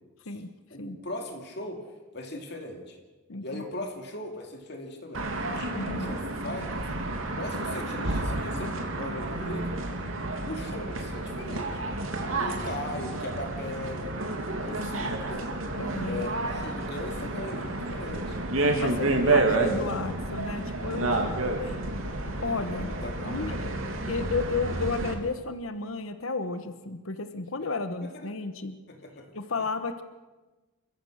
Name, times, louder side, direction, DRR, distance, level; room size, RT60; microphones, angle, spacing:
voice 1, 0.7-1.9 2.1-3.0 3.4-6.9 7.3-9.9 10.4-11.8 12.4-15.5 16.0-18.4 18.9-19.3 22.8-24.1 28.0-28.3 28.9-29.7, left 1 dB, 50° left, 3 dB, 2.6 m, -39 dB
voice 2, 3.3-3.6 5.7-6.2 15.8-16.3 18.8-21.8 22.4-22.9 23.3-23.7 24.1-28.8 29.3-30.0, left 3 dB, 75° left, 9 dB, 1.2 m, -33 dB
sound 1, 5.1-25.1, right 2 dB, 75° right, 2.8 m, -30 dB
29.0 x 15.0 x 6.6 m, 1.2 s
head